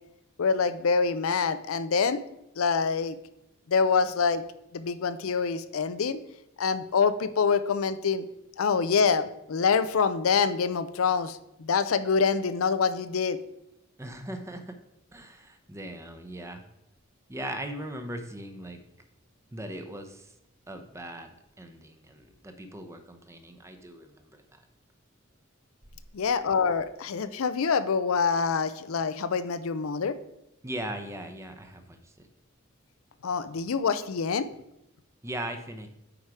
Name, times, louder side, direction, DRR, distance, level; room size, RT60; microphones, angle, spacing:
voice 1, 0.4-2.2 2.6-3.2 3.7-4.4 4.7-6.2 6.6-8.3 8.6-13.4 26.1-30.2 33.2-34.5, left 5 dB, 85° left, 12 dB, 0.5 m, -26 dB
voice 2, 14.0-14.8 15.1-16.6 17.3-18.8 19.5-20.3 20.7-24.7 30.6-32.3 35.2-35.9, right 1 dB, 15° right, 7 dB, 0.8 m, -39 dB
8.6 x 4.7 x 4.8 m, 0.85 s
head